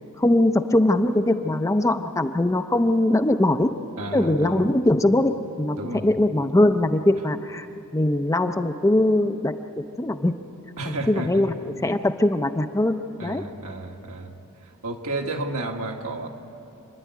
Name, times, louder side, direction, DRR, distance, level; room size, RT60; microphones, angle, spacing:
voice 1, 0.2-3.7 4.1-5.8 6.0-7.7 7.9-9.6 10.0-10.4 10.9-11.5 11.8-13.4, left 1 dB, 15° left, 8 dB, 0.5 m, -21 dB
voice 2, 4.0-4.6 5.8-6.1 10.8-11.4 13.2-14.3 14.6-16.3, right 2 dB, 75° right, 2 dB, 1.6 m, -32 dB
27.5 x 10.5 x 9.5 m, 2.8 s
head